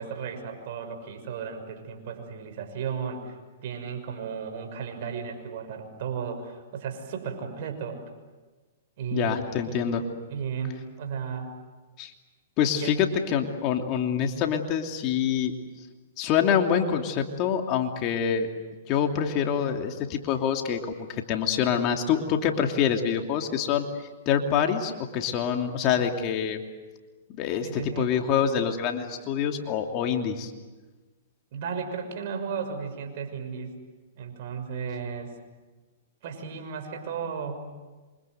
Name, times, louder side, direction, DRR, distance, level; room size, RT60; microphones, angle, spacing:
voice 1, 0.0-3.4 3.6-8.0 9.0-9.8 10.3-11.5 12.8-12.9 27.6-28.1 31.5-33.7 34.2-35.3 36.2-37.6, right 6 dB, 55° right, 6 dB, 6.3 m, -34 dB
voice 2, 9.1-10.0 12.0-12.1 12.6-15.5 16.2-18.5 18.9-23.8 24.3-26.6 27.4-30.5, left 8 dB, 35° left, 4 dB, 2.8 m, -26 dB
27.5 x 25.5 x 8.0 m, 1.3 s
hypercardioid pair, 135°, 0 cm